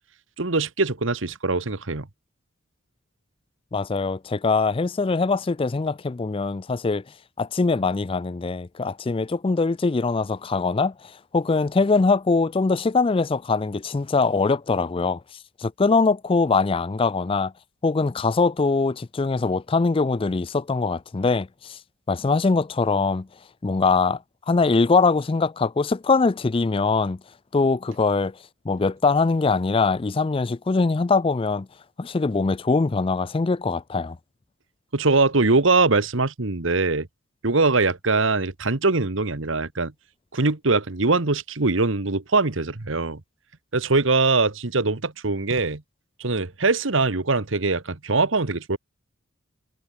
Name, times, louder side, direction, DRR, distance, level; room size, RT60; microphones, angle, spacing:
voice 1, 0.4-2.1 34.9-37.1 37.4-39.9 40.3-43.2 43.7-45.8 46.2-48.8, right 3 dB, 65° right, 1.4 m, -22 dB
voice 2, 3.7-7.0 7.4-10.9 11.3-15.2 15.6-17.5 17.8-21.8 22.1-23.3 23.6-24.2 24.5-27.2 27.5-28.3 28.7-31.7 32.0-34.2, left 4 dB, 25° left, 0.4 m, -22 dB
head